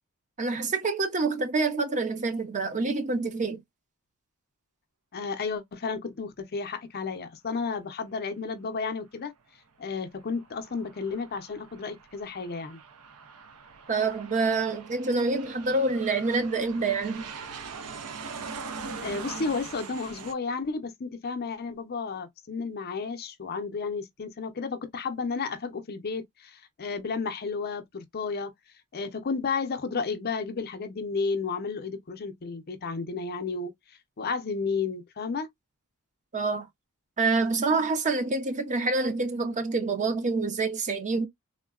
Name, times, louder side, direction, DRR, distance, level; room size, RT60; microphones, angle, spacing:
voice 1, 0.4-3.6 13.9-17.3 36.3-36.7 37.2-41.3, right 3 dB, 35° right, 0.6 m, -27 dB
voice 2, 5.1-9.3 9.8-12.8 19.0-28.5 28.9-33.7 34.2-35.5, left 4 dB, 45° left, 0.6 m, -32 dB
Aircraft, 10.1-20.3, right 5 dB, 80° right, 0.6 m, -42 dB
3.6 x 2.1 x 2.3 m
head